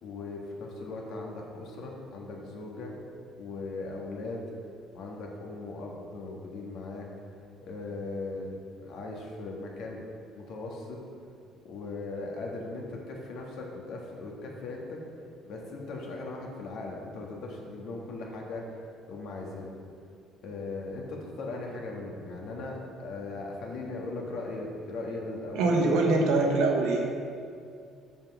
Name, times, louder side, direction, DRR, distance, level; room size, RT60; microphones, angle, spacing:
voice 1, 0.0-2.9 3.4-4.4 4.9-7.1 7.6-10.0 10.3-11.0 11.6-15.0 15.4-18.7 19.1-19.7 20.4-25.7, left 3 dB, 65° left, -1 dB, 1.6 m, -38 dB
voice 2, 25.5-27.1, right 3 dB, 85° right, 1 dB, 1.3 m, -23 dB
7.4 x 5.7 x 6.0 m, 2.3 s
cardioid pair, 140°, 0 cm